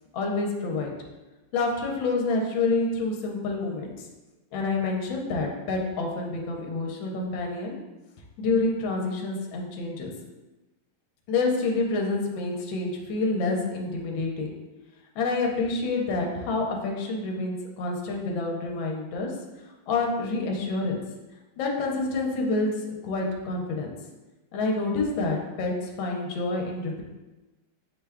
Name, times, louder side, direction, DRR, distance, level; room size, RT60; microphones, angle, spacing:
voice 1, 0.1-0.9 1.5-4.1 4.5-7.8 8.4-10.1 11.3-14.5 15.1-19.3 19.9-21.0 21.6-23.9 24.5-27.0, left 3 dB, 70° left, 0 dB, 1.3 m, -28 dB
6.1 x 2.2 x 3.4 m, 1.1 s
omnidirectional pair, 2.3 m